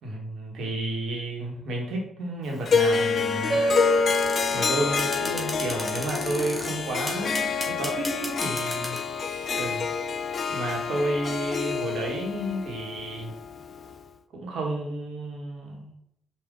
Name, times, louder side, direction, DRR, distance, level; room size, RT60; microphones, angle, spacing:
voice 1, 0.0-3.6 4.5-9.0 9.5-9.9 10.5-13.3 14.3-15.9, right 1 dB, 70° right, 0 dB, 1.3 m, -31 dB
Harp, 2.7-13.9, left 5 dB, 55° left, 0.3 m, -28 dB
sound 1, 3.5-8.4, right 1 dB, 35° right, 0.8 m, -31 dB
sound 2, 4.1-4.6 5.0-6.7 7.1-9.1, left 1 dB, 10° left, 1.6 m, -34 dB
5.3 x 2.5 x 3.6 m, 0.73 s
supercardioid pair, 50°, 0 cm